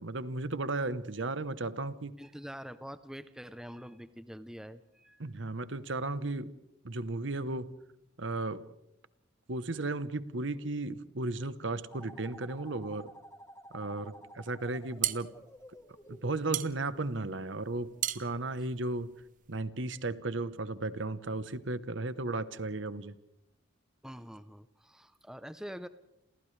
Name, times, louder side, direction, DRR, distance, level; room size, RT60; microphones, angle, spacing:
voice 1, 0.0-2.2 5.2-6.5 6.8-7.8 8.2-8.7 9.5-13.1 13.7-15.3 16.1-19.1 19.5-23.1, right 2 dB, 65° right, 14 dB, 1.0 m, -35 dB
voice 2, 2.2-5.2 24.0-25.9, equal, 5° right, 11 dB, 0.7 m, -45 dB
sound 1, 11.9-17.4, equal, 15° left, 1.4 m, -52 dB
sound 2, 14.6-19.6, right 12 dB, 40° right, 0.8 m, -37 dB
29.0 x 28.0 x 3.3 m, 0.87 s
head